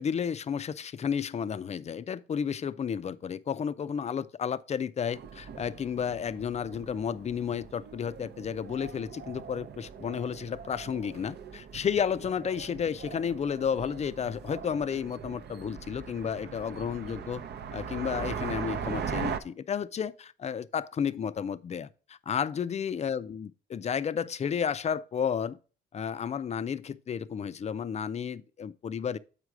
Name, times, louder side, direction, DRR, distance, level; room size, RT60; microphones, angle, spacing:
voice 1, 0.0-17.4 17.7-25.6 25.9-29.2, left 7 dB, 35° left, 0.4 m, -32 dB
sound 1, 5.1-19.4, right 7 dB, 55° right, 0.7 m, -40 dB
7.4 x 4.9 x 4.7 m
cardioid pair, 90°, 20 cm